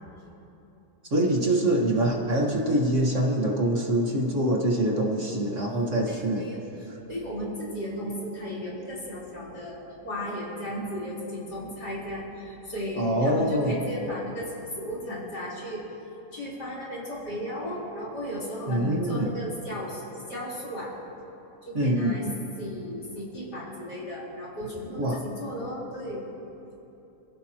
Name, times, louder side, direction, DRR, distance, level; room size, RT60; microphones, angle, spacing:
voice 1, 1.1-6.4 6.9-7.0 13.0-13.7 18.7-19.3 21.7-22.4 24.9-25.2, right 1 dB, 45° right, -1 dB, 1.8 m, -25 dB
voice 2, 5.7-6.6 7.1-9.8 10.0-15.9 16.3-20.9 21.7-22.3 22.6-26.3, equal, 65° left, -6 dB, 4.5 m, -35 dB
28.0 x 15.5 x 2.9 m, 2.9 s
omnidirectional pair, 1.9 m